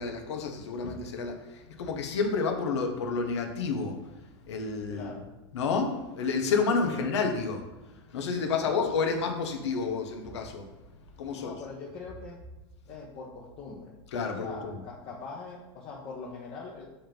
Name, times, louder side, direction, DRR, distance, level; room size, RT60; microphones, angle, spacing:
voice 1, 0.0-1.4 1.8-4.0 4.5-5.1 5.5-7.6 8.1-10.7 11.2-11.5 14.1-14.8, left 4 dB, 85° left, 4 dB, 1.2 m, -29 dB
voice 2, 4.9-5.3 6.9-7.2 8.4-8.7 11.3-12.4 12.9-14.0 14.2-16.8, left 4 dB, 40° left, -4 dB, 1.1 m, -42 dB
7.2 x 3.0 x 5.3 m, 1.1 s
supercardioid pair, 130°, 14 cm